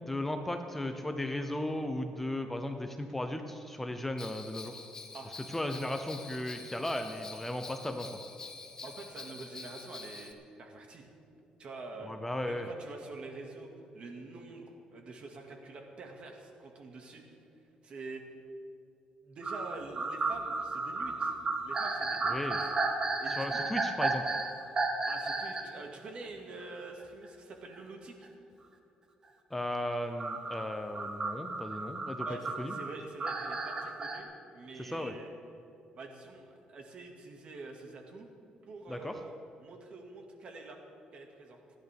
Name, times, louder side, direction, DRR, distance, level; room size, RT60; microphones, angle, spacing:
voice 1, 0.1-4.8 5.5-8.2 12.0-12.7 22.3-22.6 23.3-24.4 29.5-32.3 32.6-32.7 34.8-35.2 38.9-39.2, left 1 dB, 10° left, 6 dB, 0.8 m, -36 dB
Bell, 4.2-10.3, left 4 dB, 25° left, 1.1 m, -47 dB
voice 2, 8.8-11.1 11.6-13.7 13.9-17.2 17.8-18.2 19.2-22.6 23.0-23.6 25.1-28.3 32.2-35.3 35.9-38.3 38.7-40.8 41.1-41.6, right 3 dB, 50° right, 2 dB, 2.1 m, -46 dB
sound 1, 19.4-25.7 26.2-26.3 27.7-27.8 30.2-34.2, right 3 dB, 30° right, 1.3 m, -33 dB
28.0 x 10.5 x 3.6 m, 2.8 s
cardioid pair, 130°, 2 cm